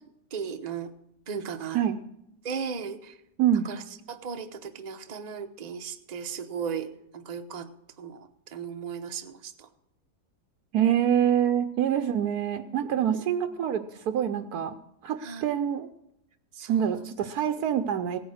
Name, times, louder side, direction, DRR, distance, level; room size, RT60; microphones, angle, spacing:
voice 1, 0.3-0.9 1.3-1.8 2.4-3.1 3.6-3.8 4.1-6.9 7.1-7.7 8.0-9.7 12.9-13.3 15.2-15.4 16.5-16.9, right 6 dB, 35° right, 7 dB, 0.8 m, -36 dB
voice 2, 10.7-14.8 15.0-15.9 16.7-18.2, right 9 dB, 80° right, 8 dB, 1.2 m, -26 dB
17.0 x 9.2 x 6.4 m, 0.80 s
omnidirectional pair, 1.7 m